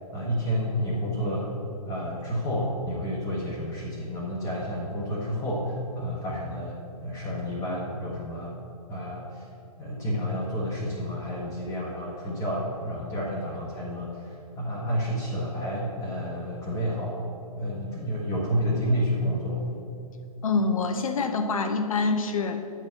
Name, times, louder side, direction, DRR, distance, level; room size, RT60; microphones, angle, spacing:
voice 1, 0.1-8.5 8.9-9.4 9.8-17.3 17.6-19.6, equal, 15° left, -5 dB, 1.2 m, -30 dB
voice 2, 20.4-22.6, left 4 dB, 60° left, 6 dB, 0.7 m, -25 dB
8.5 x 4.5 x 7.1 m, 2.6 s
figure-of-eight pair, 120°, 19 cm